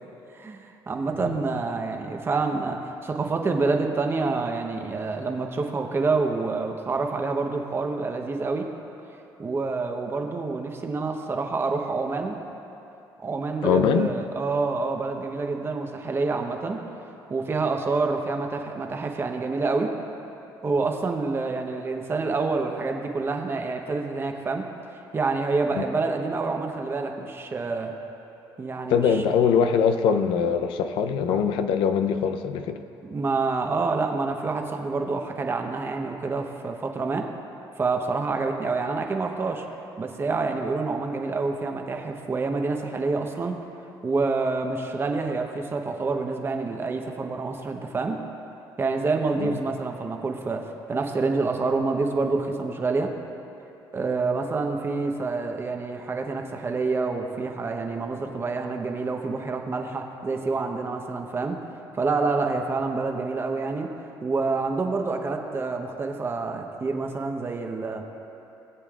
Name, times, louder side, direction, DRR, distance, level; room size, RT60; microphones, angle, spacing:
voice 1, 0.3-8.7 9.4-12.4 13.2-16.8 17.3-19.9 20.6-24.7 25.1-27.9 28.6-29.2 33.1-37.3 37.8-39.6 40.0-43.6 44.0-48.2 48.8-50.6 50.9-53.1 53.9-61.6 61.9-63.9 64.2-68.0, right 3 dB, 30° right, 3 dB, 0.9 m, -27 dB
voice 2, 13.6-14.1 25.8-25.9 28.9-32.8 49.4-49.6, left 7 dB, 85° left, 8 dB, 0.6 m, -22 dB
19.5 x 8.2 x 2.4 m, 2.9 s
cardioid pair, 115°, 9 cm